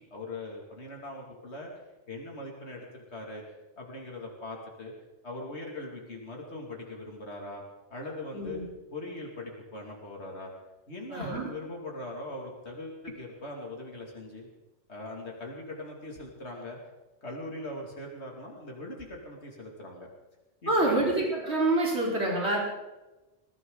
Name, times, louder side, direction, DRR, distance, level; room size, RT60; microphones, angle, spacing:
voice 1, 0.1-1.7 2.1-3.4 3.8-4.9 5.2-7.6 7.9-8.6 8.9-10.5 10.9-14.5 14.9-16.8 17.2-20.1 20.6-21.1, left 2 dB, 80° left, -1 dB, 2.9 m, -40 dB
voice 2, 8.3-8.6 11.1-11.5 20.7-22.6, right 2 dB, 75° right, -3 dB, 4.5 m, -27 dB
21.0 x 15.0 x 4.0 m, 1.0 s
omnidirectional pair, 1.1 m